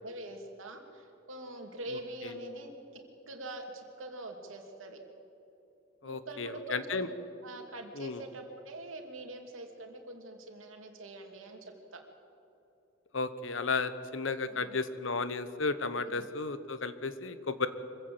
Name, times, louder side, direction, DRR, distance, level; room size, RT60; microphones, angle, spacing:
voice 1, 0.0-2.8 3.3-5.0 6.0-7.1 7.4-12.0 14.5-14.8 16.0-16.3, right 2 dB, 90° right, 3 dB, 2.8 m, -44 dB
voice 2, 6.0-7.1 7.9-8.2 13.1-17.7, left 4 dB, 70° left, 12 dB, 1.1 m, -33 dB
25.0 x 15.5 x 8.0 m, 2.8 s
head